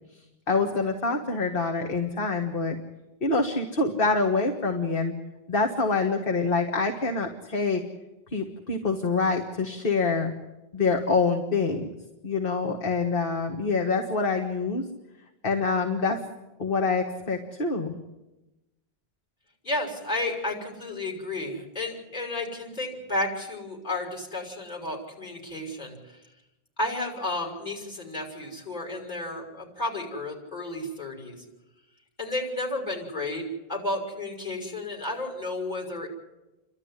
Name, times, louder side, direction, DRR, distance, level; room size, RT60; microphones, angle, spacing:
voice 1, 0.5-2.8 3.2-5.1 5.5-7.8 8.3-10.3 10.7-11.9 12.2-14.8 15.4-16.2 16.6-18.0, left 4 dB, 65° left, 3 dB, 1.8 m, -26 dB
voice 2, 19.6-26.0 26.8-31.4 32.2-33.4 33.7-36.1, left 2 dB, 45° left, 0 dB, 6.2 m, -32 dB
30.0 x 12.5 x 9.9 m, 1.0 s
omnidirectional pair, 1.0 m